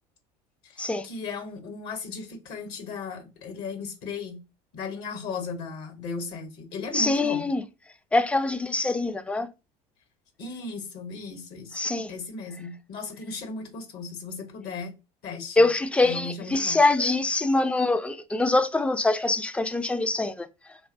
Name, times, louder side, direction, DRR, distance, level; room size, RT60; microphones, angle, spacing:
voice 1, 0.6-4.4 4.7-7.5 10.4-11.7 12.1-14.9 15.2-15.7 16.0-16.8, left 4 dB, 60° left, 1.0 m, -36 dB
voice 2, 6.9-7.6 8.1-9.5 11.7-12.1 15.6-20.5, left 2 dB, 5° left, 0.3 m, -24 dB
2.7 x 2.2 x 2.6 m
hypercardioid pair, 70°, 19 cm